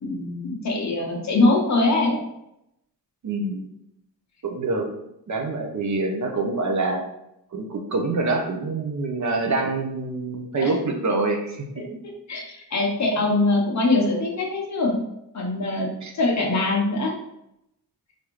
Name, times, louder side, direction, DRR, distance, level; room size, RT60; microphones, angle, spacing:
voice 1, 0.0-2.2 10.6-10.7 11.8-15.0 15.3-17.1, left 2 dB, 45° left, 0 dB, 0.8 m, -23 dB
voice 2, 3.2-3.7 4.4-4.9 5.3-7.0 7.5-11.7 16.0-16.1, right 3 dB, 45° right, 2 dB, 0.6 m, -25 dB
4.8 x 2.5 x 3.0 m, 0.82 s
wide cardioid pair, 175°, 41 cm